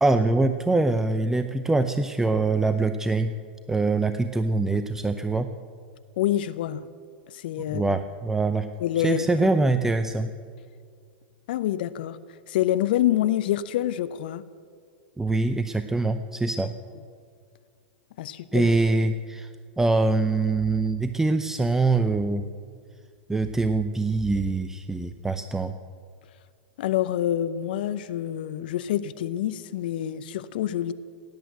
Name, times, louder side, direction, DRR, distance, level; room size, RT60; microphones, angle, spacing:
voice 1, 0.0-3.3 3.7-5.5 7.7-8.7 9.0-10.3 15.2-16.7 18.5-19.5 19.8-22.4 23.3-25.7, right 3 dB, 5° right, 9 dB, 0.6 m, -24 dB
voice 2, 6.2-6.9 7.3-8.0 8.8-9.5 11.5-12.2 12.5-14.4 18.2-18.7 26.8-30.9, left 12 dB, 60° left, 15 dB, 0.6 m, -27 dB
17.5 x 10.0 x 7.8 m, 2.2 s
figure-of-eight pair, 100°, 6 cm